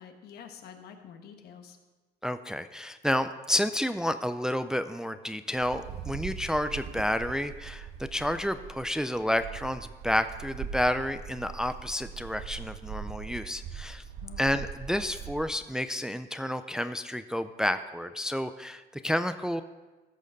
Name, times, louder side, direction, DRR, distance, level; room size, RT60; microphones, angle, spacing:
voice 1, 0.0-1.8 14.2-14.5, left 7 dB, 70° left, 5 dB, 1.3 m, -48 dB
voice 2, 2.2-14.0 14.4-19.6, left 1 dB, 5° right, 10 dB, 0.4 m, -30 dB
Wind, 5.5-15.6, right 7 dB, 75° right, 1.1 m, -41 dB
14.5 x 6.4 x 5.3 m, 1.2 s
cardioid pair, 110°, 17 cm